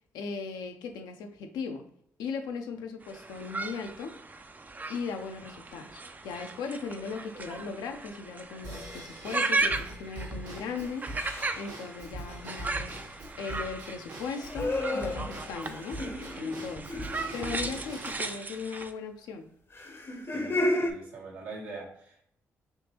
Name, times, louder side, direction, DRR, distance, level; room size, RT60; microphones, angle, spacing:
voice 1, 0.1-1.8 2.2-4.1 4.9-11.1 11.6-16.9 17.3-19.5, left 5 dB, 75° left, 5 dB, 0.5 m, -38 dB
strus i gesi, 3.0-18.9, right 3 dB, 25° right, 0.3 m, -36 dB
Drum kit / Drum / Bell, 8.6-18.3, right 1 dB, 65° right, 1.0 m, -43 dB
sound 1, 8.7-9.0 11.1-11.7 14.3-17.9 19.7-20.9, left 1 dB, 35° left, 0.7 m, -33 dB
voice 2, 20.3-22.2, right 3 dB, 80° right, -4 dB, 1.1 m, -43 dB
3.5 x 2.8 x 2.8 m, 0.67 s
hypercardioid pair, 45°, 7 cm